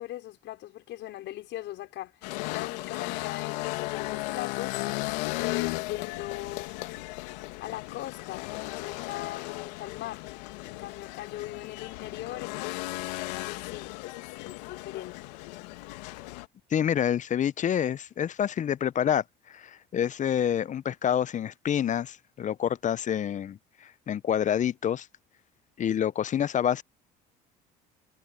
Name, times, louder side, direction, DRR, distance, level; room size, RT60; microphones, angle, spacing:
voice 1, 0.0-2.2 2.5-4.8 5.4-6.9 7.6-10.3 10.6-12.9 13.7-15.2, left 14 dB, 65° left, 5.6 m, -40 dB
sound 1, 2.2-16.5, left 22 dB, 85° left, 2.1 m, -36 dB
voice 2, 16.7-25.1 25.8-26.8, left 9 dB, 35° left, 0.6 m, -27 dB
supercardioid pair, 80°, 21 cm